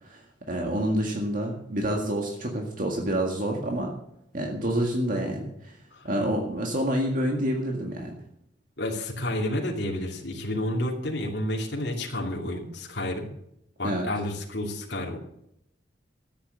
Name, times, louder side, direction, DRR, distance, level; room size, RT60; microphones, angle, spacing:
voice 1, 0.0-3.9 4.3-5.8 6.0-8.1 13.8-14.1, right 1 dB, 45° right, 1 dB, 1.9 m, -28 dB
voice 2, 5.9-6.3 8.8-13.3 13.8-15.2, left 1 dB, 65° left, -1 dB, 2.7 m, -30 dB
13.5 x 8.9 x 7.6 m, 0.77 s
head